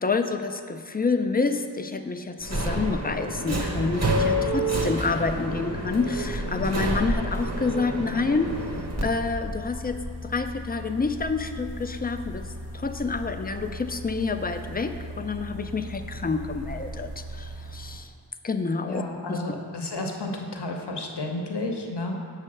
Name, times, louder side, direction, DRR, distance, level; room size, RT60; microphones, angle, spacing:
voice 1, 0.0-8.6 9.0-12.5 12.7-18.1 18.4-19.0 19.3-19.4, left 4 dB, 25° left, 7 dB, 0.4 m, -28 dB
Subway metro underground, 2.4-9.0, right 1 dB, 40° right, 1.0 m, -28 dB
sound 1, 8.4-18.0, equal, 65° right, 1.8 m, -38 dB
voice 2, 18.8-22.2, left 2 dB, 80° left, 2 dB, 0.8 m, -32 dB
7.5 x 3.3 x 6.2 m, 2.2 s
wide cardioid pair, 50°, 40 cm